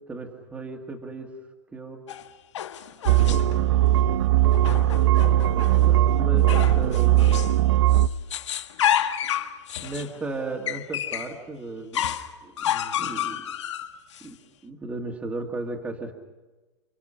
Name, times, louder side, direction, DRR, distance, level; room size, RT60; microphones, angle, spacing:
voice 1, 0.1-1.3 1.7-2.0 3.0-3.5 4.4-4.5 5.6-7.5 9.8-12.1 12.4-13.4 14.2-14.4 14.6-16.1, right 2 dB, 10° right, 1 dB, 1.8 m, -35 dB
sound 1, 2.1-3.6 4.5-5.9 6.5-7.6 7.9-11.3 11.9-14.3, left 10 dB, 90° left, 1.7 m, -30 dB
sound 2, 3.1-8.1, right 13 dB, 65° right, 0.8 m, -19 dB
29.5 x 28.0 x 5.6 m, 1.2 s
supercardioid pair, 165°, 15 cm